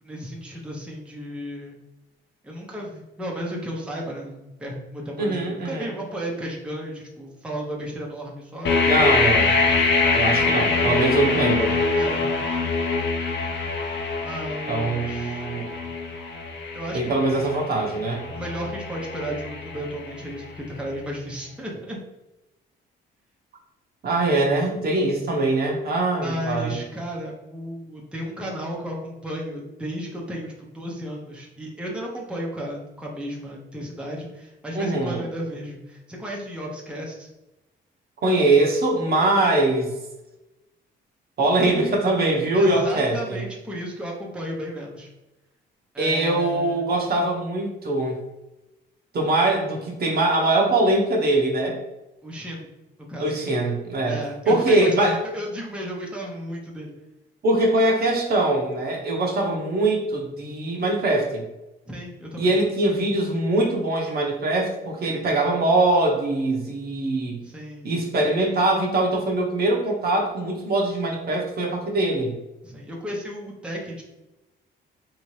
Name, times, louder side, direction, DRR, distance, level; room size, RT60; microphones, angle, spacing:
voice 1, 0.0-1.8 2.4-8.8 11.9-12.3 14.2-15.5 16.7-17.4 18.3-22.0 26.2-37.3 42.5-45.1 45.9-46.8 52.2-52.7 53.1-53.4 54.0-56.9 61.9-62.5 67.4-67.9 72.6-74.0, equal, 5° right, -3 dB, 0.8 m, -34 dB
voice 2, 5.2-5.9 8.8-9.6 10.1-11.7 14.7-15.7 16.9-18.2 24.0-26.8 34.7-35.2 38.2-39.9 41.4-43.4 46.0-48.2 49.1-51.8 53.2-54.2 54.5-55.2 57.4-61.4 62.4-67.4 67.8-72.3, right 2 dB, 50° right, -1 dB, 0.9 m, -22 dB
sound 1, 8.6-20.4, left 4 dB, 65° left, 0.6 m, -24 dB
3.3 x 2.9 x 3.2 m, 1.0 s
cardioid pair, 90°, 20 cm